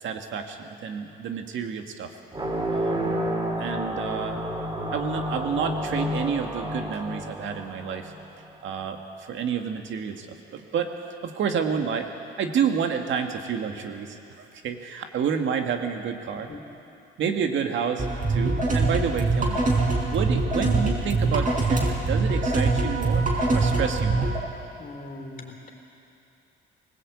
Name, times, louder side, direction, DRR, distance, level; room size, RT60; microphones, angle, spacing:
voice 1, 0.0-2.1 2.7-3.2 3.6-4.4 4.9-8.1 8.6-11.0 11.2-12.1 12.4-16.5 17.2-19.6 20.0-24.3, right 7 dB, 75° right, 4 dB, 2.0 m, -29 dB
sound 1, 2.3-8.5, equal, 25° right, 2.9 m, -30 dB
sound 2, 18.0-24.4, right 3 dB, 40° right, 4.9 m, -23 dB
voice 2, 24.8-25.7, left 2 dB, 45° left, 1 dB, 4.0 m, -40 dB
20.5 x 19.5 x 8.6 m, 2.7 s
cardioid pair, 90°, 20 cm